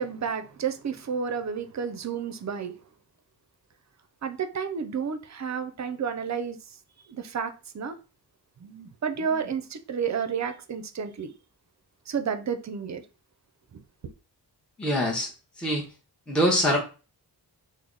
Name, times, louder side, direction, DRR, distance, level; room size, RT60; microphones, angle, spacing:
voice 1, 0.0-2.8 4.2-6.8 7.1-8.0 8.6-11.3 12.1-13.0 13.7-13.8, right 6 dB, 45° right, 0.5 m, -31 dB
voice 2, 14.8-15.3 15.6-15.8 16.3-16.8, equal, ahead, 0.8 m, -23 dB
3.3 x 2.1 x 3.8 m
wide cardioid pair, 75°, 40 cm